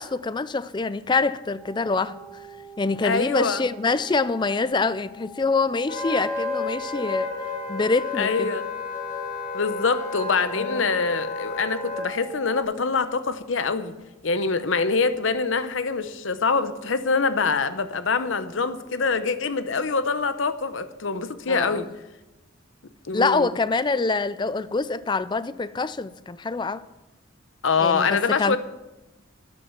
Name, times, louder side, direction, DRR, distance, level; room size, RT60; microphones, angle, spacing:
voice 1, 0.0-2.2 2.8-7.3 7.7-8.5 10.6-10.8 21.5-21.8 23.1-26.8 27.8-28.6, left 3 dB, 20° left, 0.4 m, -25 dB
sound 1, 1.6-12.6, right 3 dB, ahead, 2.3 m, -45 dB
voice 2, 3.0-3.6 8.2-8.6 9.5-13.9 14.2-21.9 23.0-23.5 27.6-28.6, left 4 dB, 65° left, 0.8 m, -24 dB
Wind instrument woodwind instrument, 5.9-12.1, left 3 dB, 40° left, 2.3 m, -31 dB
12.0 x 9.9 x 5.8 m
head